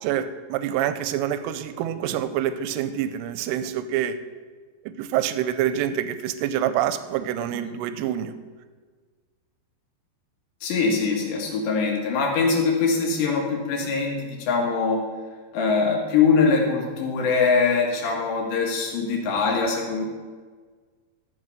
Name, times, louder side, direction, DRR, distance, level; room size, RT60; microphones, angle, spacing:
voice 1, 0.0-4.2 4.8-8.3, right 10 dB, 80° right, 12 dB, 2.6 m, -26 dB
voice 2, 10.6-15.1 15.5-20.1, left 4 dB, 85° left, -1 dB, 3.9 m, -23 dB
14.0 x 5.9 x 6.7 m, 1.5 s
omnidirectional pair, 4.9 m